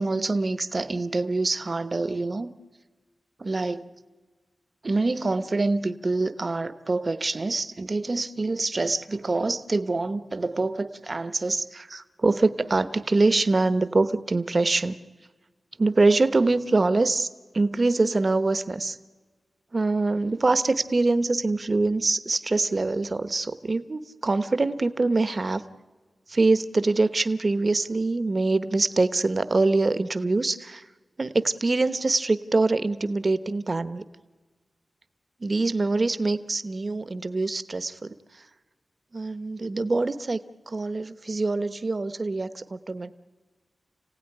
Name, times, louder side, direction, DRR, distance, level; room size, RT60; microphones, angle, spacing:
voice 1, 0.0-2.5 3.4-3.9 4.8-15.0 15.8-17.3 17.5-19.0 19.7-25.6 26.3-30.9 31.2-34.0 35.4-38.4 39.1-43.1, right 3 dB, 35° right, 12 dB, 1.0 m, -25 dB
29.5 x 17.0 x 10.0 m, 1.4 s
wide cardioid pair, 125°, 0 cm